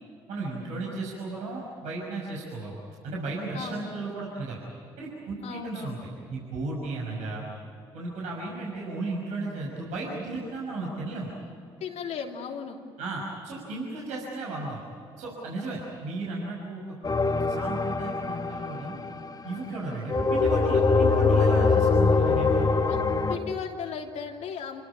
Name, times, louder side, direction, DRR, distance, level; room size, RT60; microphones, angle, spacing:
voice 1, 0.3-2.7 3.0-4.6 5.0-7.5 7.9-11.3 13.0-14.8 15.2-16.8 17.5-19.0 19.4-22.7, right 2 dB, 70° right, -4 dB, 6.1 m, -34 dB
voice 2, 3.5-3.9 5.4-6.0 11.8-12.8 22.9-23.0 23.3-24.8, left 7 dB, 65° left, 1 dB, 3.1 m, -36 dB
sound 1, 17.0-19.5 20.1-23.4, left 4 dB, 30° left, 2.5 m, -23 dB
28.0 x 18.0 x 8.8 m, 2.6 s
hypercardioid pair, 50°, 13 cm